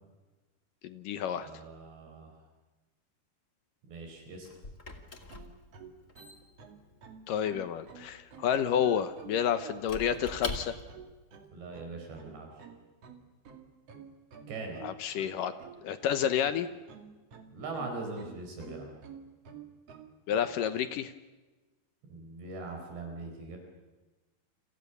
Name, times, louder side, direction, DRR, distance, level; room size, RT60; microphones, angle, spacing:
voice 1, 0.8-1.5 7.3-10.7 14.8-15.5 15.8-16.7 20.3-21.1, left 9 dB, 75° left, 11 dB, 2.1 m, -30 dB
voice 2, 1.3-2.4 3.9-4.6 11.5-12.7 14.5-14.9 17.5-18.9 22.1-23.6, right 3 dB, 70° right, 3 dB, 6.5 m, -41 dB
Squeak / Wood, 3.9-11.1, left 3 dB, 25° left, 1.7 m, -44 dB
sound 1, 5.3-20.8, right 7 dB, 40° right, 2.9 m, -50 dB
29.5 x 27.0 x 7.0 m, 1.2 s
omnidirectional pair, 5.0 m